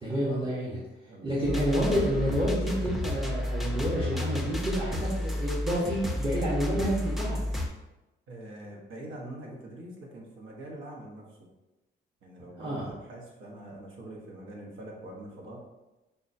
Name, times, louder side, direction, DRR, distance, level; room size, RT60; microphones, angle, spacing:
voice 1, 0.0-0.8 1.2-7.4 12.6-13.0, equal, 25° right, -7 dB, 0.9 m, -29 dB
sound 1, 1.4-7.7, left 1 dB, ahead, 0.5 m, -31 dB
voice 2, 8.3-11.4 12.2-15.6, right 1 dB, 80° right, -1 dB, 0.9 m, -44 dB
5.2 x 2.2 x 2.6 m, 1.0 s
cardioid pair, 90°, 20 cm